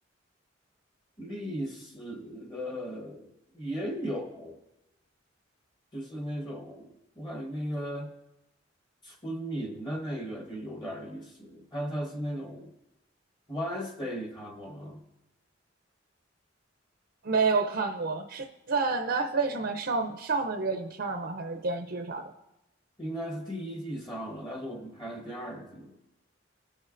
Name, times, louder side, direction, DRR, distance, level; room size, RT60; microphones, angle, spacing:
voice 1, 1.2-4.6 5.9-6.9 7.2-8.1 9.0-12.7 13.5-15.0 23.0-26.0, equal, 25° left, 0 dB, 1.3 m, -36 dB
voice 2, 17.2-22.3, right 4 dB, 60° right, 5 dB, 0.6 m, -29 dB
18.0 x 6.4 x 2.6 m, 0.94 s
head